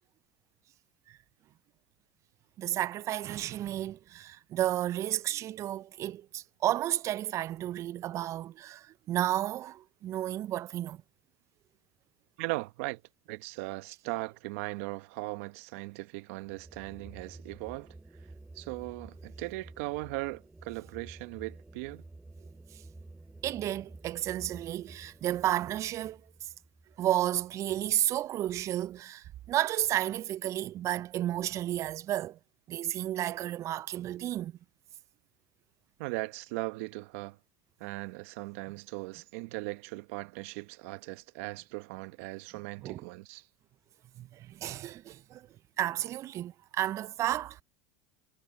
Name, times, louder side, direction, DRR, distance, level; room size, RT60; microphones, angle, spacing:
voice 1, 2.6-11.0 23.4-26.2 27.0-32.4 32.7-34.5 42.8-43.0 44.2-45.5 45.8-47.6, right 13 dB, 40° right, 0.4 m, -32 dB
voice 2, 12.4-13.0 13.3-17.9 18.5-22.0 36.0-37.4 37.8-43.5, right 23 dB, 70° right, 1.1 m, -38 dB
sound 1, 16.4-27.8, right 2 dB, 10° right, 7.3 m, -51 dB
supercardioid pair, 100°, 8 cm